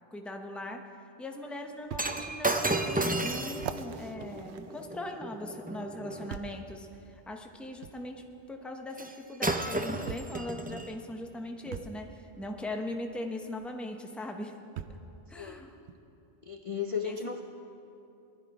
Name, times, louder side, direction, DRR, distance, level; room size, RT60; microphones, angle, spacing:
voice 1, 0.1-0.9 1.2-14.6 15.3-15.7 17.0-17.2, left 1 dB, ahead, 4 dB, 0.7 m, -40 dB
sound 1, 0.8-0.9 1.9-2.1 2.7-2.8 3.5-5.4 6.3-6.7 7.8-8.0 9.2-9.3 10.1-10.4 11.7-12.0 13.6-13.7 14.8-15.1 15.9-16.0, right 8 dB, 80° right, 0.9 m, -41 dB
Shatter, 1.9-6.3 9.0-9.1 9.4-10.9 11.7-11.8, right 2 dB, 15° right, 0.3 m, -33 dB
voice 2, 16.5-17.4, left 7 dB, 40° left, 4 dB, 0.6 m, -34 dB
19.0 x 12.0 x 4.8 m, 2.8 s
omnidirectional pair, 1.1 m